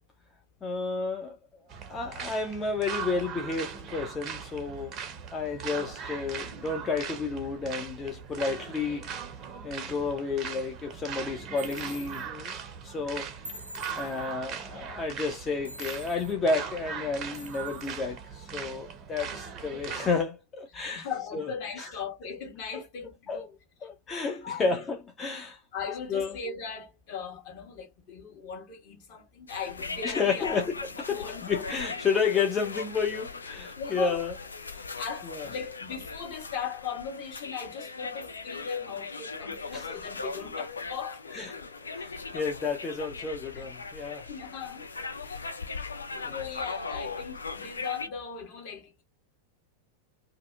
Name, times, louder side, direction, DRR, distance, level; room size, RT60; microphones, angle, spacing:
voice 1, 0.6-1.4 1.9-5.0 5.3-9.1 9.6-12.5 12.8-13.3 14.0-21.1 21.3-21.5 21.8-21.9 23.3-23.4 23.8-25.6 26.1-26.4 30.0-34.3 34.7-34.9 35.3-35.5 39.7-39.9 41.3-41.5 41.9-44.3 46.2-46.4, left 4 dB, 20° left, 0.5 m, -31 dB
sound 1, 1.7-20.2, right 7 dB, 35° right, 0.6 m, -40 dB
sound 2, 11.6-12.3 13.4-14.3 15.6-16.4 17.3-18.0, left 1 dB, 85° right, 0.5 m, -45 dB
voice 2, 20.7-23.9 24.4-24.7 25.7-30.6 31.1-31.6 33.8-34.2 35.0-41.5 43.5-43.6 44.3-44.9 45.2-45.5 46.1-49.0, left 6 dB, 45° left, 1.2 m, -38 dB
sound 3, 29.5-48.1, left 4 dB, 75° left, 0.4 m, -39 dB
2.6 x 2.4 x 2.4 m
figure-of-eight pair, 90°, 0 cm